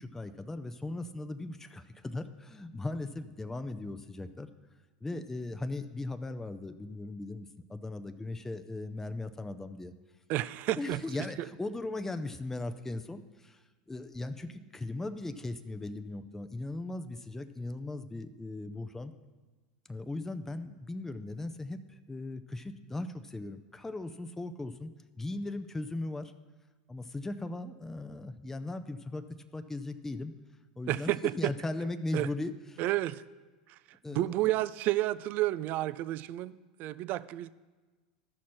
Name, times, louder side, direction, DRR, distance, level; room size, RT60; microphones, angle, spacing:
voice 1, 0.0-4.5 5.0-9.9 10.8-13.6 13.9-19.1 19.9-24.9 25.2-26.3 26.9-29.3 29.5-30.3 30.8-32.8 34.0-34.4, left 2 dB, 10° left, 0.5 m, -38 dB
voice 2, 10.3-11.0 30.9-31.5 32.1-32.3 32.8-33.2 33.7-33.8 34.1-37.5, right 16 dB, 50° right, 0.4 m, -31 dB
13.0 x 6.1 x 4.4 m
hypercardioid pair, 100°, 4 cm